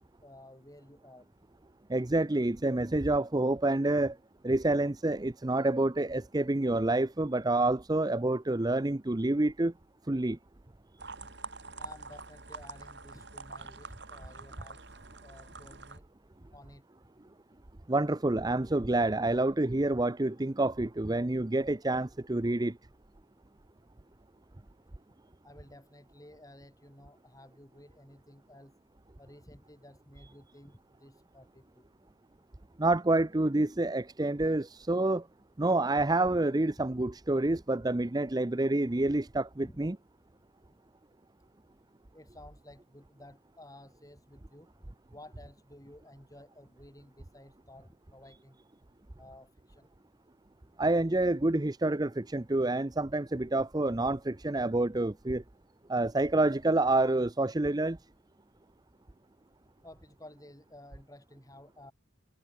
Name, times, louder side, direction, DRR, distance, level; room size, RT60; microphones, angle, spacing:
voice 1, 0.2-1.3 11.2-11.3 11.8-14.9 15.2-16.0 16.5-16.8 25.4-28.8 29.2-31.8 39.6-39.8 42.1-44.7 45.1-48.6 49.2-49.9 59.8-61.9, left 1 dB, 20° left, 7.6 m, -54 dB
voice 2, 1.9-4.2 4.4-9.7 10.1-10.4 17.9-22.8 32.8-35.3 35.6-40.0 50.8-55.4 55.9-58.0, right 2 dB, 20° right, 0.6 m, -28 dB
sound 1, 11.0-16.0, right 3 dB, 60° right, 7.5 m, -46 dB
head